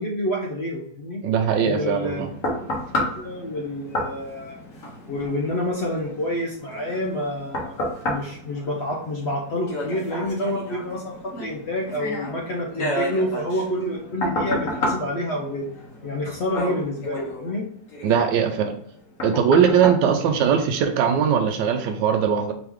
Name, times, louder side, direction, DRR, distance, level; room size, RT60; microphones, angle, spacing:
voice 1, 0.0-1.2 1.6-2.3 2.5-2.7 3.0-4.6 5.1-7.8 8.0-15.7 16.0-17.7, left 1 dB, 65° left, -1 dB, 0.6 m, -28 dB
voice 2, 1.2-2.3 18.0-18.8 19.2-22.5, right 7 dB, 80° right, 4 dB, 1.2 m, -20 dB
sound 1, 1.8-21.0 21.5-21.7, left 1 dB, 50° left, 1.4 m, -32 dB
3.8 x 3.1 x 3.5 m, 0.64 s
omnidirectional pair, 1.9 m